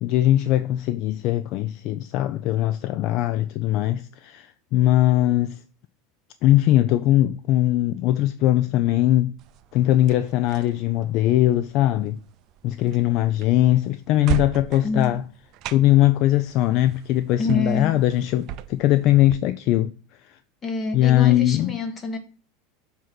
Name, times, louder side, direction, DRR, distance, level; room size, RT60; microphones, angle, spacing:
voice 1, 0.0-5.6 6.4-9.3 9.7-12.2 12.6-15.2 15.7-19.9 20.3-20.4 20.9-21.8, left 14 dB, 55° left, 0.4 m, -20 dB
sound 1, 9.4-19.4, right 10 dB, 50° right, 0.4 m, -37 dB
voice 2, 14.8-15.2 17.4-18.0 20.6-22.2, left 3 dB, 25° left, 1.4 m, -27 dB
7.5 x 2.8 x 5.8 m
hypercardioid pair, 90°, 0 cm